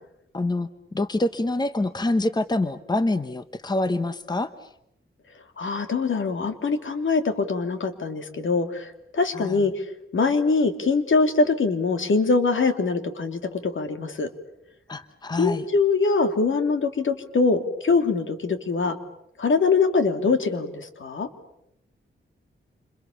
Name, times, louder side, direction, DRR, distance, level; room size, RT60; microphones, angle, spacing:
voice 1, 0.3-0.7 0.9-4.5 9.3-9.7 14.9-15.7, left 2 dB, 20° left, 11 dB, 1.0 m, -26 dB
voice 2, 5.6-9.9 10.1-14.3 15.4-19.0 19.4-21.3, left 4 dB, 70° left, 7 dB, 2.9 m, -23 dB
29.0 x 27.5 x 7.2 m, 0.80 s
wide cardioid pair, 150°, 21 cm